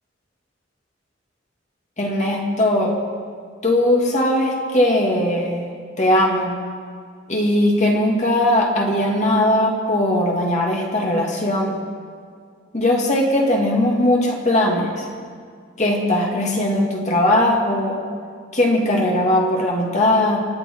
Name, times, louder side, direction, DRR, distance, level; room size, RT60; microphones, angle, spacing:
voice 1, 2.0-3.0 3.6-5.7 6.0-6.6 7.3-11.8 12.7-15.0 15.8-18.0 18.5-20.4, left 1 dB, 40° left, -1 dB, 2.3 m, -19 dB
26.5 x 8.9 x 4.6 m, 2.1 s
head